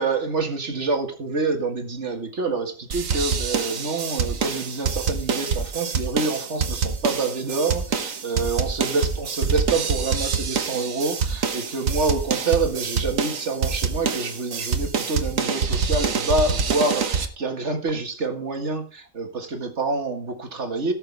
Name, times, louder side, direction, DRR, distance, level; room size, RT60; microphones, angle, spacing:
voice 1, 0.0-20.9, right 3 dB, 60° right, 5 dB, 2.1 m, -27 dB
sound 1, 2.9-17.3, right 5 dB, 80° right, 1.6 m, -26 dB
18.0 x 6.8 x 3.4 m, 0.34 s
omnidirectional pair, 1.4 m